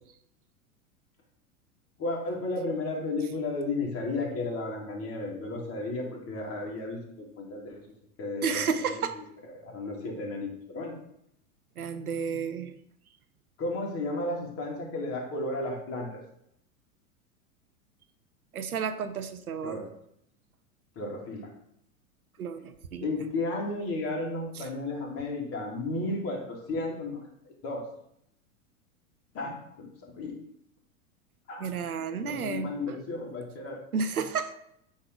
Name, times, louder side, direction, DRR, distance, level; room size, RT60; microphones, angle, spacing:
voice 1, 2.0-9.2 9.5-10.9 13.6-16.2 19.6-19.9 21.0-21.5 23.0-27.2 27.6-27.9 29.3-30.4 31.5-31.7 32.2-33.8, left 2 dB, 30° left, -1 dB, 2.2 m, -33 dB
voice 2, 8.4-9.2 11.8-12.7 18.5-19.8 22.4-23.1 24.5-24.7 31.6-33.0 33.9-34.5, right 6 dB, 85° right, 10 dB, 0.7 m, -32 dB
8.2 x 3.2 x 5.1 m, 0.74 s
figure-of-eight pair, 95°, 43 cm